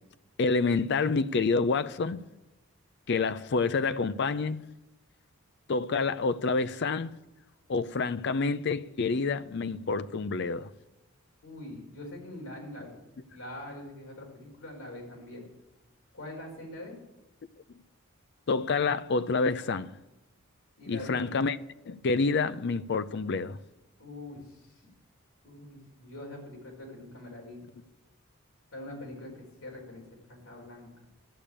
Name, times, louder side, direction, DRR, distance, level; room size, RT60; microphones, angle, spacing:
voice 1, 0.4-2.2 3.1-4.7 5.7-7.1 7.7-10.7 18.5-19.9 20.9-21.6 21.9-23.6, left 4 dB, 50° left, 0.5 m, -28 dB
voice 2, 11.4-13.0 13.3-15.5 16.1-17.0 20.8-21.2 24.0-24.8 25.4-27.6 28.7-30.0 30.3-30.9, left 1 dB, 75° left, 4.4 m, -43 dB
12.0 x 6.8 x 8.7 m
head